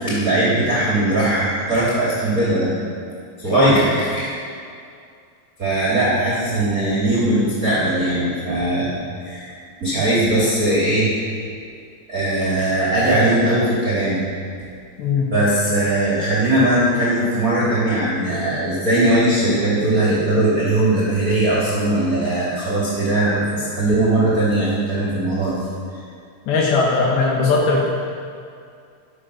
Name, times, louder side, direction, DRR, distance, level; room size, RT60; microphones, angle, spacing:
voice 1, 0.0-2.7 3.4-4.3 5.6-9.5 9.8-11.1 12.1-14.2 15.3-25.6, right 1 dB, 25° right, -7 dB, 2.5 m, -19 dB
voice 2, 15.0-15.3 26.5-27.9, left 4 dB, 75° left, -2 dB, 3.5 m, -19 dB
15.5 x 12.0 x 6.4 m, 2.3 s
omnidirectional pair, 5.1 m